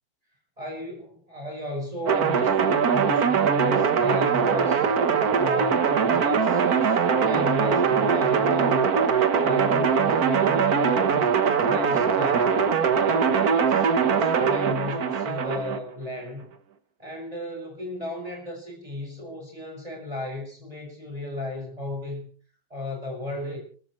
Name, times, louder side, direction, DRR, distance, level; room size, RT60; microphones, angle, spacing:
voice 1, 0.6-4.9 5.3-8.9 9.3-11.3 11.6-12.6 13.0-16.5 17.0-22.3 22.7-23.6, left 1 dB, 20° right, -1 dB, 6.2 m, -34 dB
sound 1, 2.1-15.8, right 6 dB, 55° right, 1.6 m, -22 dB
29.5 x 14.0 x 3.1 m, 0.43 s
omnidirectional pair, 2.0 m